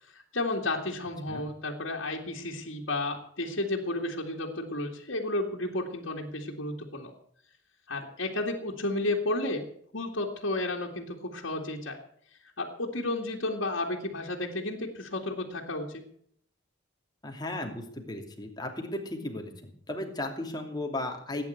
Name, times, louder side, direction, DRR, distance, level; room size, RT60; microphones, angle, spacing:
voice 1, 0.3-7.1 7.9-9.7 9.9-12.0 12.6-15.9, left 2 dB, 70° left, -1 dB, 2.4 m, -32 dB
voice 2, 17.2-21.4, left 1 dB, 20° left, 3 dB, 2.8 m, -35 dB
17.0 x 9.7 x 8.1 m, 0.63 s
head